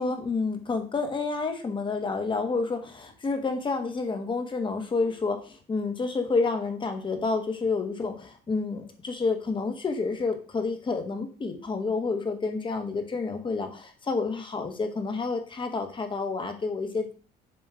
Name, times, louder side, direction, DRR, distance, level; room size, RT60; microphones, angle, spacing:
voice 1, 0.0-17.1, left 4 dB, 30° left, 6 dB, 1.2 m, -29 dB
7.2 x 3.0 x 4.8 m, 0.39 s
cardioid pair, 110°, 17 cm